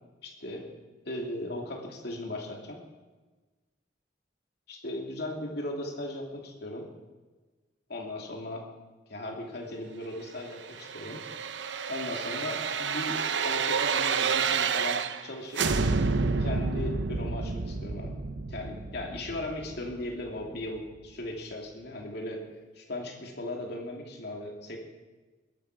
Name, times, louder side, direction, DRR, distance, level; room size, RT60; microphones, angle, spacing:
voice 1, 0.2-0.7 1.0-2.8 4.7-6.9 7.9-8.6 9.1-11.2 11.9-15.7 16.4-18.1 18.5-22.4 22.8-24.8, left 1 dB, 65° left, 0 dB, 2.9 m, -37 dB
sound 1, 10.5-15.3 15.5-20.4 20.8-20.9, right 5 dB, 85° right, 0.8 m, -30 dB
21.5 x 11.5 x 5.0 m, 1.3 s
head